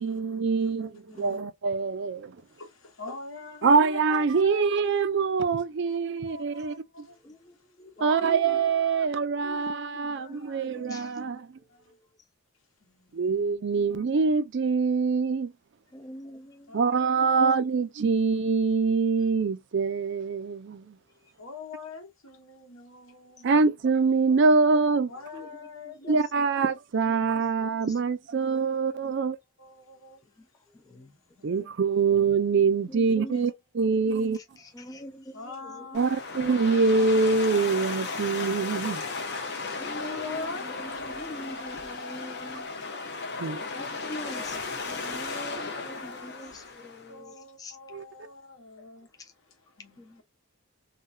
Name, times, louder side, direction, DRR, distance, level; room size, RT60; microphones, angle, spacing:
voice 1, 0.0-2.4 3.6-6.7 8.0-11.6 13.1-15.5 16.7-21.0 23.4-25.1 26.1-29.4 31.4-34.4 35.9-39.0 43.4-43.6 47.9-48.0, right 4 dB, 55° right, 0.4 m, -24 dB
voice 2, 0.6-1.4 2.4-5.0 5.9-9.1 9.5-11.3 11.7-12.0 12.8-13.4 13.7-14.2 16.7-17.0 21.4-23.6 25.1-26.3 28.3-28.4 28.7-28.8 29.2-29.3 29.6-30.2 30.8-31.7 33.0-33.5 34.2-34.3 35.2-36.2 39.8-42.5 43.7-46.6 47.1-50.2, left 4 dB, 75° left, 1.3 m, -45 dB
voice 3, 7.2-8.4 9.5-9.6 9.9-11.2 11.9-12.0 15.9-16.8 25.3-25.5 26.0-26.5 27.8-27.9 30.7-31.1 32.9-33.4 34.3-35.9 39.8-42.7 43.7-44.6 44.8-47.8 49.2-49.3 50.0-50.2, left 1 dB, 15° left, 0.3 m, -44 dB
sound 1, 35.9-47.1, left 4 dB, 50° left, 0.9 m, -35 dB
3.7 x 2.2 x 2.6 m
head